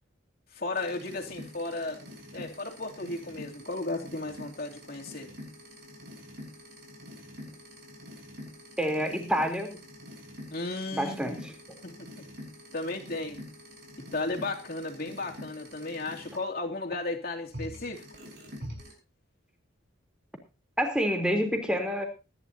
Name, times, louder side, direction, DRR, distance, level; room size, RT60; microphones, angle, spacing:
voice 1, 0.5-2.1 2.3-5.3 10.5-11.4 11.8-12.2 12.7-13.4 14.1-18.0, left 2 dB, 50° left, 2.9 m, -34 dB
sound 1, 0.7-16.4 17.5-18.9, equal, 55° right, 6.6 m, -46 dB
voice 2, 8.8-9.8 10.9-11.5 20.8-22.0, equal, 5° right, 3.4 m, -28 dB
23.0 x 11.5 x 2.8 m
head